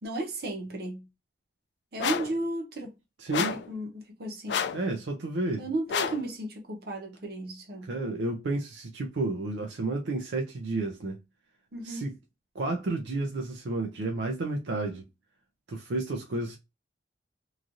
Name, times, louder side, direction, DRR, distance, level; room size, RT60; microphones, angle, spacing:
voice 1, 0.0-1.1 1.9-2.9 3.3-4.7 5.6-7.9 11.7-12.1, right 2 dB, 60° right, 0.9 m, -34 dB
sound 1, 2.0-2.4 3.3-3.7 4.5-4.9 5.9-6.3, left 7 dB, 80° left, 0.4 m, -30 dB
voice 2, 3.2-3.6 4.7-5.7 7.8-11.2 11.8-12.2 12.5-15.1 15.7-16.6, right 2 dB, 85° right, 0.5 m, -31 dB
3.1 x 2.4 x 2.5 m
head